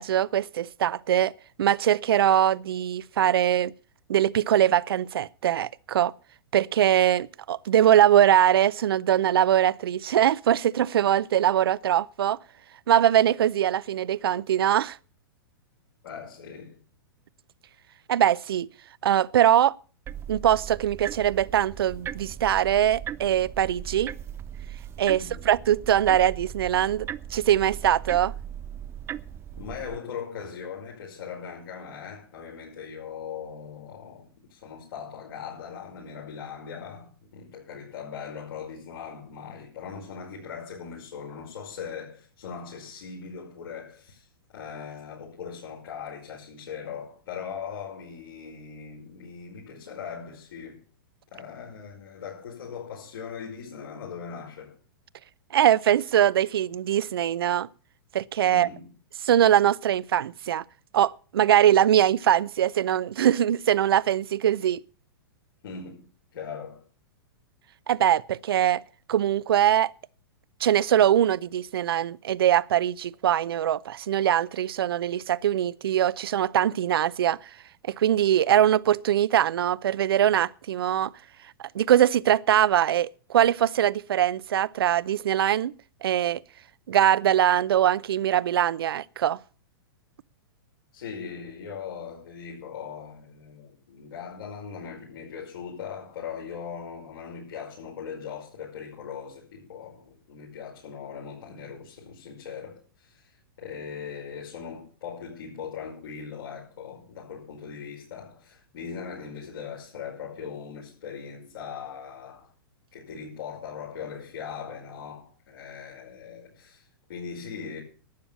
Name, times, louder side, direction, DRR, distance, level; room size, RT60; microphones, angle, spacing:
voice 1, 0.0-1.3 1.6-3.7 4.1-6.1 6.5-12.4 12.9-15.0 18.1-18.7 19.0-19.7 20.3-24.1 25.0-28.3 55.5-57.7 58.1-58.7 59.3-60.6 60.9-64.8 67.9-68.8 69.1-69.9 70.6-77.4 77.9-81.1 81.6-85.7 86.0-86.4 86.9-89.4, right 11 dB, 75° right, 0.6 m, -22 dB
voice 2, 16.0-16.8 25.1-25.4 29.6-44.3 44.5-50.8 51.3-54.7 58.5-58.9 65.6-66.8 90.9-112.5 112.9-117.8, left 6 dB, 70° left, 5.5 m, -40 dB
sound 1, 20.1-30.0, right 10 dB, 20° right, 0.5 m, -38 dB
12.5 x 8.9 x 7.2 m
hypercardioid pair, 130°, 12 cm